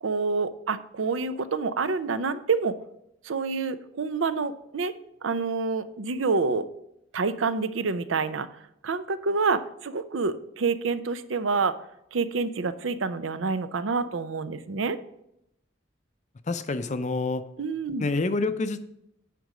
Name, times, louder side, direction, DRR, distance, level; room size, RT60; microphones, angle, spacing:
voice 1, 0.0-2.7 3.2-4.9 5.2-6.7 7.1-8.5 8.8-11.7 12.1-15.0 17.6-18.1, right 4 dB, 80° right, 12 dB, 0.6 m, -27 dB
voice 2, 16.4-17.5 18.0-18.8, left 3 dB, 35° left, 11 dB, 0.5 m, -27 dB
9.2 x 5.2 x 4.9 m, 0.79 s
head